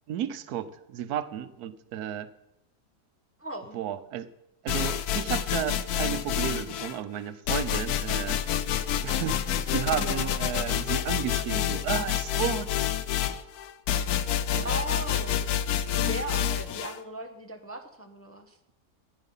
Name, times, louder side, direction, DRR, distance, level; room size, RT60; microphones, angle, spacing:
voice 1, 0.1-2.3 3.7-4.3 4.6-8.4 9.0-12.7 13.3-13.4 14.5-14.7, right 10 dB, 85° right, 13 dB, 1.2 m, -33 dB
voice 2, 3.4-3.8 9.9-10.4 14.6-15.4 15.9-18.5, right 1 dB, 10° left, 5 dB, 0.7 m, -37 dB
sound 1, 4.7-7.0 7.5-17.0, left 10 dB, 90° left, 1.2 m, -28 dB
14.5 x 10.0 x 5.4 m, 0.87 s
omnidirectional pair, 1.6 m